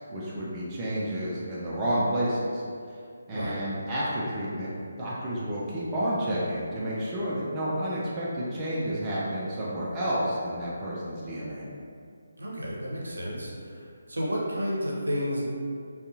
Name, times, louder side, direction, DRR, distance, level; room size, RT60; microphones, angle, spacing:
voice 1, 0.1-2.6 3.3-4.7 5.0-11.7, equal, 15° right, -8 dB, 0.4 m, -30 dB
voice 2, 12.4-15.4, equal, 70° right, -4 dB, 0.6 m, -31 dB
2.6 x 2.3 x 2.5 m, 2.3 s
figure-of-eight pair, 150°, 0 cm